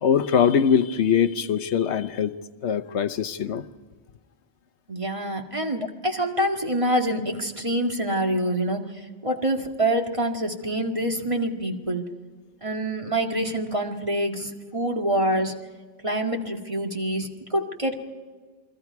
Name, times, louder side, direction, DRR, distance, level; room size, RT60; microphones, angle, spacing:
voice 1, 0.0-2.3 2.6-3.6, left 7 dB, 90° left, 1.2 m, -22 dB
voice 2, 4.9-12.1 12.6-15.5 16.0-18.0, right 1 dB, 30° right, 2.0 m, -26 dB
28.5 x 22.0 x 4.7 m
omnidirectional pair, 1.1 m